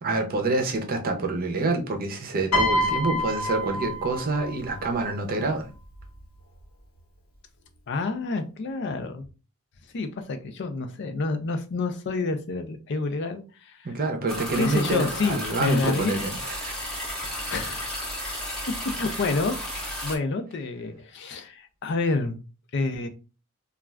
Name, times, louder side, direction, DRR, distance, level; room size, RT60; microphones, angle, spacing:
voice 1, 0.0-5.7 13.8-16.7, right 2 dB, 45° right, 0.6 m, -27 dB
Piano, 2.5-4.9 5.9-6.2, equal, 85° left, 1.1 m, -27 dB
voice 2, 7.9-9.2 9.9-13.9 14.6-16.1 17.2-18.5 18.9-22.4 22.7-23.1, left 3 dB, 55° left, 0.4 m, -29 dB
sound 1, 14.3-20.2, equal, 5° left, 0.8 m, -33 dB
2.4 x 2.3 x 3.2 m
head